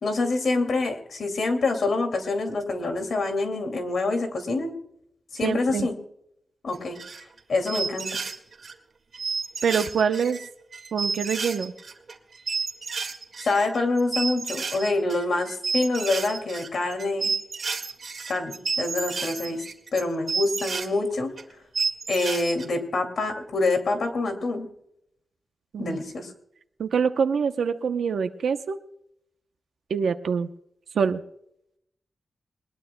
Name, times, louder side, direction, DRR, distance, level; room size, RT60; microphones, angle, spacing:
voice 1, 0.0-4.7 5.3-5.9 6.6-7.0 7.5-8.2 13.4-17.3 18.3-19.6 19.9-21.3 22.1-24.7 25.8-26.3, left 3 dB, 60° left, 6 dB, 2.3 m, -26 dB
voice 2, 5.4-5.9 9.6-10.4 10.9-11.7 25.7-26.0 26.8-28.8 29.9-30.5 30.9-31.2, right 6 dB, 85° right, 8 dB, 0.7 m, -25 dB
sound 1, 6.7-7.4 7.7-8.7 9.1-20.9 21.4-21.5 21.7-22.6, right 5 dB, 50° right, 1.8 m, -31 dB
20.5 x 20.5 x 2.2 m, 0.75 s
wide cardioid pair, 160°, 0 cm